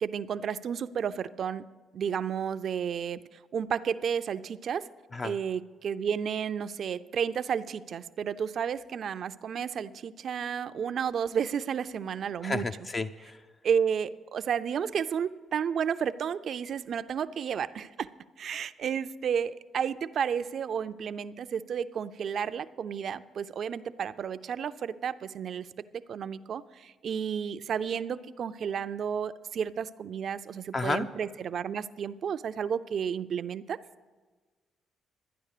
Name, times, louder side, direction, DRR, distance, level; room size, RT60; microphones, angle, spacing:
voice 1, 0.0-1.6 1.9-4.8 5.2-12.7 13.6-18.1 18.4-25.7 25.9-33.8, right 7 dB, 60° right, 13 dB, 0.4 m, -32 dB
voice 2, 12.4-13.4 30.7-31.1, left 3 dB, 30° left, 8 dB, 0.4 m, -31 dB
12.0 x 9.7 x 6.6 m, 1.4 s
cardioid pair, 90°, 0 cm